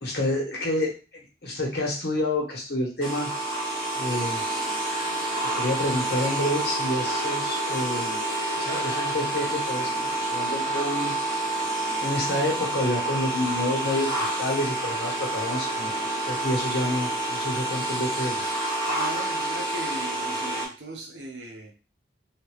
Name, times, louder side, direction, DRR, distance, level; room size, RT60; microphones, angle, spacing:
voice 1, 0.0-3.3 3.9-4.4 5.5-8.2 8.5-11.2 12.0-15.9 16.2-18.4, left 1 dB, 60° left, -2 dB, 1.4 m, -28 dB
sound 1, 3.0-20.7, right 2 dB, 25° right, 1.7 m, -28 dB
sound 2, 3.7-12.0, left 3 dB, 85° left, 0.9 m, -44 dB
voice 2, 18.9-21.7, right 2 dB, 85° right, 1 dB, 0.8 m, -39 dB
3.3 x 2.8 x 3.1 m, 0.33 s
head